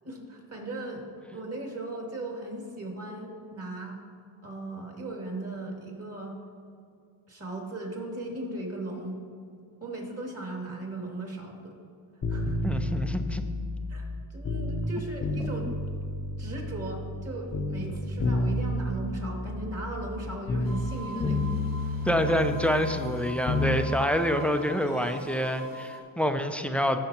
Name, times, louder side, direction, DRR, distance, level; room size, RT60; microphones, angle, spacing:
voice 1, 0.0-4.0 4.4-6.4 7.3-9.2 9.8-11.8 12.3-12.6 13.9-15.8 16.4-22.2, right 2 dB, 30° right, 0 dB, 2.3 m, -37 dB
sound 1, 12.2-14.9 15.2-17.3 17.5-20.9 21.2-23.8 24.1-24.2, left 2 dB, 35° left, 0.7 m, -31 dB
voice 2, 12.4-13.4 21.1-21.6 22.1-27.0, equal, 5° left, 6 dB, 0.5 m, -27 dB
sound 2, 20.6-26.0, right 2 dB, 65° right, 1.6 m, -43 dB
15.5 x 6.6 x 2.9 m, 2.3 s
cardioid pair, 85°, 47 cm